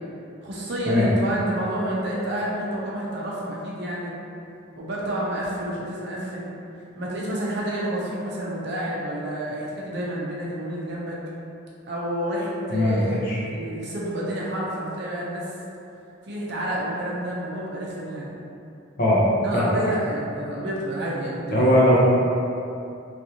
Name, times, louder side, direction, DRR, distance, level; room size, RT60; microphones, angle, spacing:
voice 1, 0.4-4.1 4.8-6.5 7.0-11.2 11.9-15.5 16.2-18.4 19.4-21.8, right 1 dB, 60° right, -5 dB, 0.6 m, -29 dB
voice 2, 12.7-13.4 19.0-19.2 19.5-19.6 21.5-22.0, equal, 50° left, -6 dB, 0.7 m, -19 dB
3.2 x 2.6 x 2.8 m, 2.7 s
head